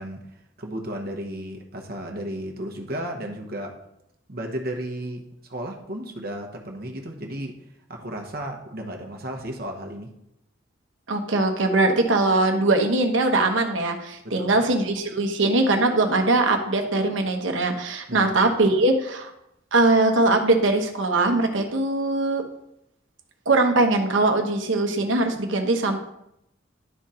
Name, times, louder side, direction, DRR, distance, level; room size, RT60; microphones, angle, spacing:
voice 1, 0.0-3.7 4.3-5.2 5.5-7.6 7.9-10.1 14.2-14.6 18.1-18.4, right 1 dB, 55° right, 2 dB, 1.1 m, -34 dB
voice 2, 11.1-19.3 19.7-22.4 23.5-26.0, right 2 dB, 80° right, 4 dB, 1.1 m, -21 dB
11.5 x 3.9 x 4.3 m, 0.80 s
head